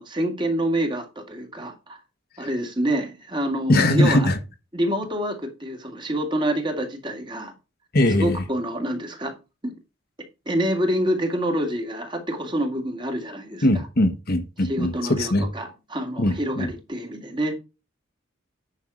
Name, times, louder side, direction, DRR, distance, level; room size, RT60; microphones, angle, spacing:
voice 1, 0.0-2.0 2.4-4.3 4.7-7.5 8.2-9.4 9.6-9.8 10.5-13.7 14.6-17.6, right 1 dB, 25° right, 2.3 m, -27 dB
voice 2, 3.7-4.4 7.9-8.4 13.6-15.5 16.2-16.7, left 1 dB, 50° left, 1.3 m, -20 dB
9.9 x 5.8 x 4.9 m
head